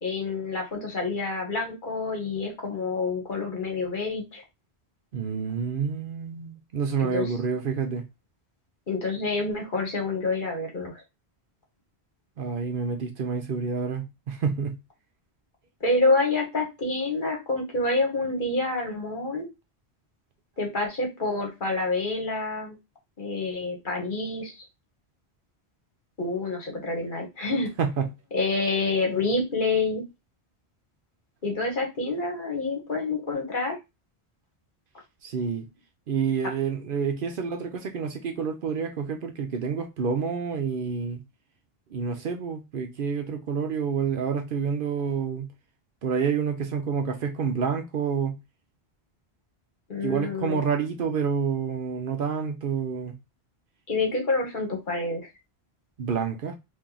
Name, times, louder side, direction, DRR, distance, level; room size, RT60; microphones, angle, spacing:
voice 1, 0.0-4.4 7.0-7.3 8.9-10.9 15.8-19.5 20.6-22.8 23.2-24.6 26.2-27.7 28.3-30.0 31.4-33.8 49.9-50.6 53.9-55.3, left 3 dB, 50° left, 1.2 m, -27 dB
voice 2, 5.1-8.0 12.4-14.8 27.8-28.1 35.2-35.7 36.1-41.2 41.9-45.5 46.0-48.4 50.0-53.2 56.0-56.6, right 6 dB, 60° right, 0.7 m, -28 dB
2.9 x 2.6 x 3.8 m
omnidirectional pair, 1.1 m